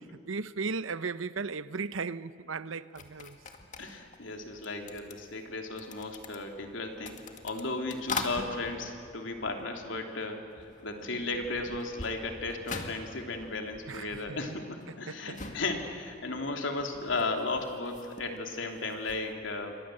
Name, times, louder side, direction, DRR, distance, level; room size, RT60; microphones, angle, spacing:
voice 1, 0.3-3.4 13.9-14.4 14.9-15.4, right 4 dB, 80° right, 0.8 m, -36 dB
sound 1, 2.9-10.2 10.5-19.3, left 3 dB, 40° left, 2.1 m, -43 dB
voice 2, 3.8-19.8, left 3 dB, 70° left, 3.2 m, -35 dB
28.5 x 24.5 x 7.8 m
head